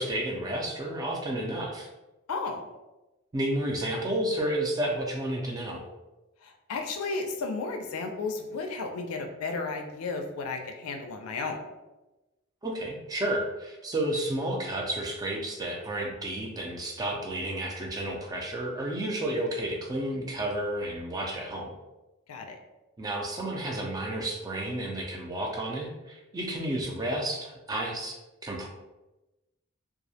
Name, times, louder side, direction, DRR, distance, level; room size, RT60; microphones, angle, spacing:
voice 1, 0.0-1.9 3.3-5.8 12.6-21.7 23.0-28.7, right 1 dB, 20° right, 0 dB, 0.3 m, -31 dB
voice 2, 2.3-2.6 6.4-11.6 22.3-22.6, left 3 dB, 85° left, 5 dB, 0.4 m, -33 dB
2.3 x 2.0 x 2.6 m, 1.0 s
head